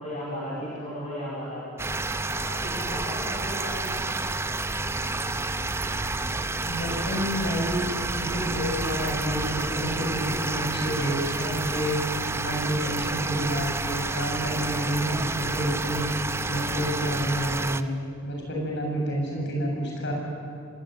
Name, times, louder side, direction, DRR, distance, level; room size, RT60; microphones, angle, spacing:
voice 1, 0.0-1.7 2.3-4.1, equal, 30° left, -7 dB, 5.3 m, -35 dB
sound 1, 1.8-17.8, right 3 dB, 10° right, 0.5 m, -30 dB
sound 2, 4.7-9.8, left 1 dB, 80° left, 3.8 m, -39 dB
voice 2, 6.6-7.9 8.1-12.0 12.4-16.0 16.5-17.9 18.2-20.1, equal, 50° left, -1 dB, 7.9 m, -29 dB
25.0 x 19.5 x 9.5 m, 2.5 s
head